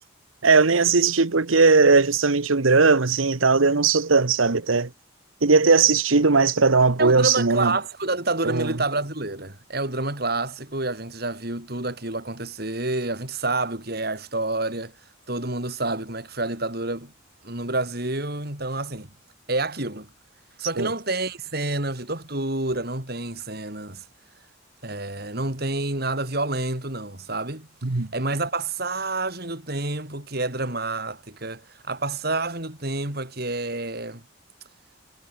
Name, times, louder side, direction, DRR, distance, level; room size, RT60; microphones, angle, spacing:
voice 1, 0.4-4.9 5.4-7.7 8.4-8.7 20.8-20.9 27.8-28.1, right 4 dB, 90° right, 1.2 m, -18 dB
voice 2, 7.0-14.9 15.3-17.1 17.4-19.1 19.5-20.1 20.6-24.0 24.8-27.7 28.1-34.2, right 2 dB, 50° right, 4.9 m, -28 dB
head